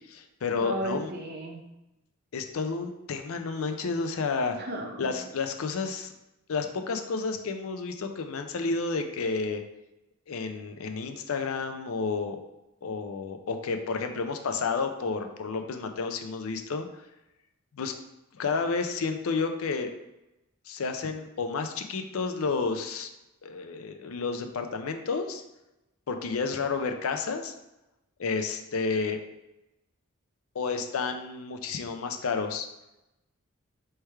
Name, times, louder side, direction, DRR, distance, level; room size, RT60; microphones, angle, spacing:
voice 1, 0.1-1.1 2.3-4.6 5.0-6.1 6.5-9.6 10.3-12.4 12.8-16.9 17.7-17.9 18.3-19.9 20.7-23.1 23.4-25.4 26.1-27.5 28.2-29.2 30.5-32.7, left 4 dB, 75° left, 6 dB, 0.5 m, -31 dB
voice 2, 0.6-1.6 4.6-5.1, right 2 dB, 50° right, 1 dB, 0.8 m, -35 dB
3.3 x 3.2 x 4.5 m, 0.94 s
head